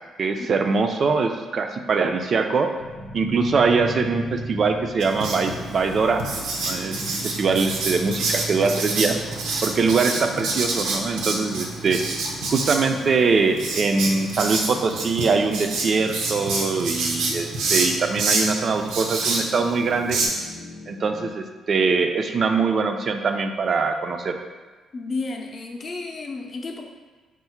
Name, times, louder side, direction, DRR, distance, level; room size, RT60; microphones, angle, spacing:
voice 1, 0.2-2.7 3.1-6.3 6.7-9.2 9.6-12.0 12.5-20.2 20.9-24.4, right 4 dB, 50° right, 6 dB, 0.4 m, -22 dB
sound 1, 2.7-21.3, right 1 dB, 90° left, 0.6 m, -39 dB
Writing, 5.0-20.3, right 3 dB, 85° right, 0.6 m, -28 dB
voice 2, 24.9-26.9, left 3 dB, 40° left, 2 dB, 0.5 m, -32 dB
4.6 x 2.1 x 4.2 m, 1.3 s
cardioid pair, 90°, 0 cm